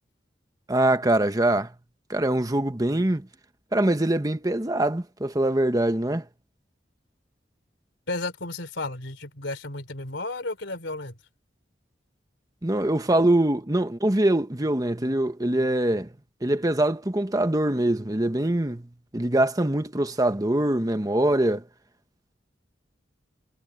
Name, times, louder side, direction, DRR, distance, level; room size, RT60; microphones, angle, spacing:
voice 1, 0.7-1.7 2.1-3.3 3.7-6.3 12.6-16.1 16.4-18.9 19.1-21.6, right 1 dB, 20° right, 1.2 m, -23 dB
voice 2, 8.1-11.2, left 2 dB, 90° left, 3.4 m, -33 dB
head